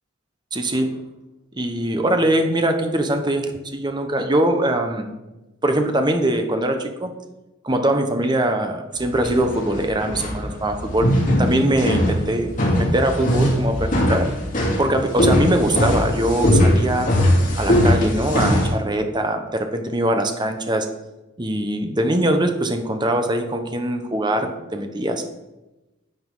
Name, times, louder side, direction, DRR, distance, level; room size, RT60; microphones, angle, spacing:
voice 1, 0.5-0.9 1.5-5.1 5.6-7.1 7.6-11.1 11.4-12.5 12.8-14.3 14.8-17.1 17.6-20.9 21.4-25.2, right 1 dB, 20° right, 5 dB, 1.0 m, -22 dB
sound 1, 9.0-18.7, left 1 dB, 40° left, 2.6 m, -20 dB
11.0 x 7.8 x 3.9 m, 1.0 s
head